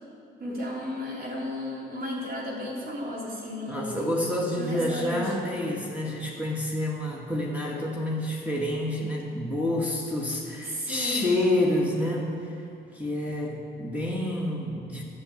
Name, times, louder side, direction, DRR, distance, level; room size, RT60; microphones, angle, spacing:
voice 1, 0.4-3.9 4.6-5.3 10.7-11.3, left 1 dB, 50° right, -4 dB, 3.0 m, -33 dB
voice 2, 3.7-12.6 12.9-15.0, left 1 dB, 5° right, -2 dB, 1.6 m, -28 dB
10.0 x 7.0 x 8.4 m, 2.6 s
cardioid pair, 90°, 20 cm